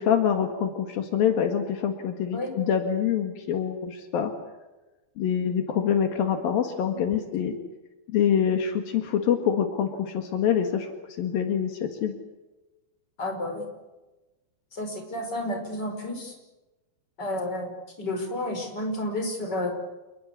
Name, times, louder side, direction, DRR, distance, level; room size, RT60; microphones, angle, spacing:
voice 1, 0.0-4.3 5.2-7.6 8.1-10.9 11.2-12.1, left 8 dB, 75° left, 6 dB, 3.6 m, -25 dB
voice 2, 13.2-13.7 14.7-16.3 17.2-19.7, left 1 dB, 25° left, 4 dB, 5.7 m, -31 dB
28.5 x 21.0 x 8.3 m, 1.1 s
omnidirectional pair, 4.2 m